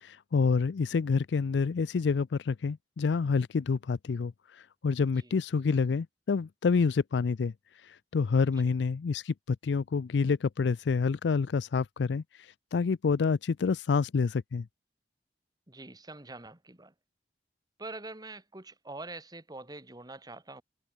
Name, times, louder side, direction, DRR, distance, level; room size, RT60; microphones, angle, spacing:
voice 1, 0.0-4.3 4.8-7.5 8.1-12.2 12.7-14.7, left 5 dB, 80° left, 0.4 m, -27 dB
voice 2, 15.7-16.9 17.8-20.6, right 2 dB, 25° right, 2.4 m, -44 dB
head